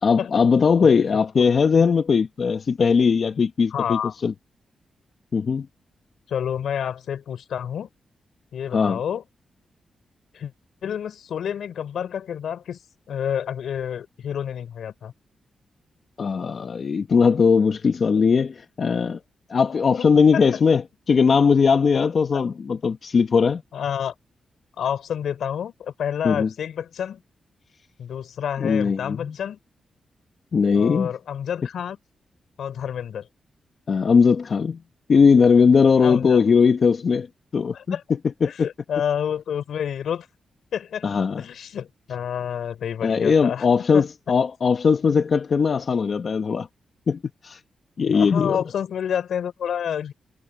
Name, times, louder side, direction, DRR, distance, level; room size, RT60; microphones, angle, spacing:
voice 1, 0.0-4.3 5.3-5.7 8.7-9.0 16.2-19.2 19.5-20.8 21.1-23.6 26.2-26.5 28.6-29.3 30.5-31.1 33.9-34.8 35.1-37.3 37.5-38.0 38.4-38.7 41.0-41.4 43.0-46.7 47.1-47.6 48.0-48.6, left 5 dB, 60° left, 1.1 m, -19 dB
voice 2, 3.7-4.1 6.3-7.9 8.5-9.2 10.3-10.5 10.8-12.8 13.1-15.1 20.3-20.6 21.9-22.1 23.7-24.1 24.8-27.2 28.0-29.6 30.7-32.0 32.6-33.3 36.0-36.4 37.7-38.0 38.4-40.3 40.7-41.1 41.4-43.7 43.9-44.1 48.1-50.1, left 8 dB, 85° left, 4.5 m, -29 dB
cardioid pair, 70°, 0 cm